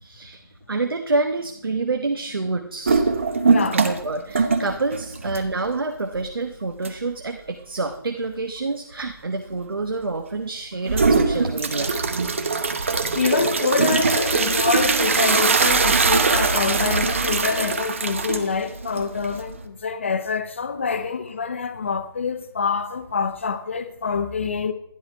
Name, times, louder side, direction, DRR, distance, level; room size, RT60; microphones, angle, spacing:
voice 1, 0.0-3.1 3.7-11.9, right 3 dB, 75° right, 1.2 m, -27 dB
sound 1, 2.9-4.1 4.3-5.7 6.1-6.2 6.8-6.9 10.9-19.6, right 4 dB, 35° right, 0.9 m, -21 dB
voice 2, 3.5-3.8 13.1-24.7, left 5 dB, 30° left, 0.8 m, -26 dB
12.0 x 10.5 x 4.5 m
figure-of-eight pair, 170°, 12 cm